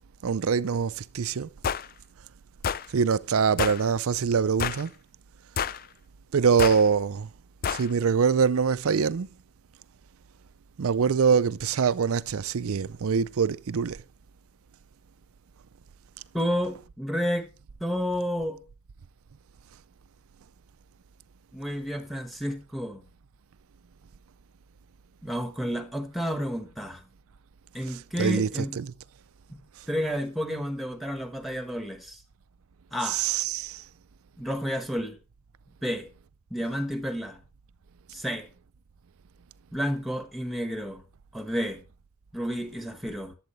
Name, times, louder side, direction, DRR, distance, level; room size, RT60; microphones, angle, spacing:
voice 1, 0.2-1.5 2.9-4.9 6.3-7.3 7.7-9.3 10.8-14.0 27.9-28.9 33.0-33.8, right 6 dB, 75° right, 0.5 m, -24 dB
sound 1, 1.6-1.9 2.6-2.9 3.6-3.8 4.6-4.9 5.6-5.8 6.6-6.8 7.6-7.9, left 7 dB, 40° left, 0.4 m, -28 dB
voice 2, 16.3-17.5 17.8-18.6 21.5-23.0 25.2-27.0 27.7-28.8 29.5-29.6 29.9-32.2 32.9-33.2 34.4-35.2 35.8-36.1 36.5-37.4 38.1-38.5 39.7-41.0 41.3-41.8 42.3-43.3, equal, ahead, 1.3 m, -31 dB
12.0 x 7.8 x 3.1 m
head